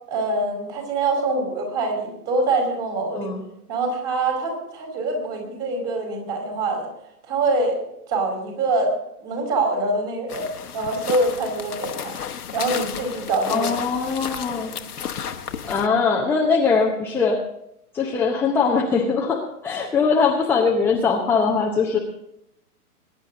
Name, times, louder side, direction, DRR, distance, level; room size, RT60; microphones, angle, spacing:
voice 1, 0.1-3.3 3.7-6.9 7.3-7.8 8.1-8.9 9.2-10.5 10.7-12.2 12.5-13.7, right 2 dB, 30° right, 3 dB, 4.9 m, -24 dB
sound 1, 10.3-15.9, left 8 dB, 75° left, 1.2 m, -33 dB
voice 2, 13.5-14.7 15.7-17.4 17.9-22.0, left 5 dB, 5° left, -1 dB, 0.7 m, -21 dB
21.0 x 10.5 x 3.8 m, 0.81 s
figure-of-eight pair, 125°, 46 cm